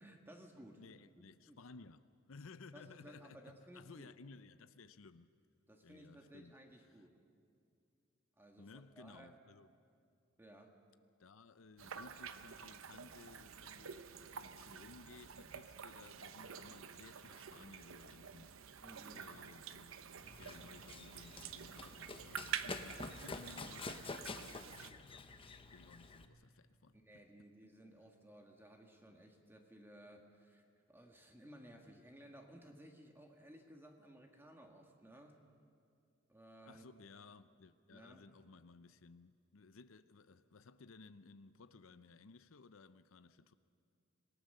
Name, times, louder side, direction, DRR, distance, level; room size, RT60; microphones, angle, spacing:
voice 1, 0.0-0.8 1.2-1.6 2.7-4.1 5.7-7.2 8.4-9.4 10.4-10.7 18.8-19.2 26.9-35.4 36.3-37.0 37.9-38.3, right 1 dB, 10° right, 1.6 m, -58 dB
voice 2, 0.8-5.3 5.8-6.6 6.9-7.0 8.6-9.7 11.2-18.9 19.1-24.5 24.8-25.3 25.7-27.2 36.7-43.5, left 4 dB, 80° left, 0.7 m, -58 dB
sound 1, 11.8-24.9, right 7 dB, 85° right, 0.8 m, -49 dB
Run, 20.2-26.3, left 3 dB, 25° left, 1.0 m, -48 dB
26.5 x 18.5 x 6.7 m
head